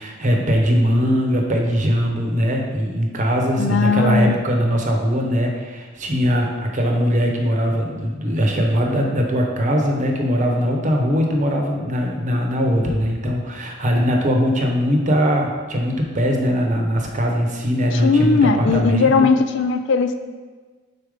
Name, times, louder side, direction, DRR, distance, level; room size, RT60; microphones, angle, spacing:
voice 1, 0.0-19.3, equal, 40° right, 2 dB, 0.9 m, -20 dB
voice 2, 3.6-4.3 17.9-20.1, left 4 dB, 65° left, 8 dB, 0.4 m, -18 dB
5.0 x 4.3 x 5.1 m, 1.4 s
head